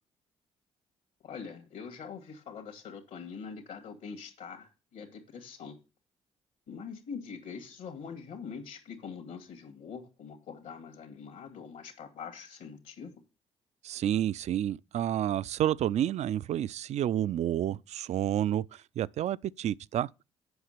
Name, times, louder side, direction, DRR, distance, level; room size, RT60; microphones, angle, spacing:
voice 1, 1.2-5.8 6.7-13.2, left 6 dB, 75° left, 2.2 m, -44 dB
voice 2, 13.8-20.1, right 11 dB, 55° right, 0.4 m, -30 dB
7.9 x 5.7 x 6.7 m
hypercardioid pair, 50°, 14 cm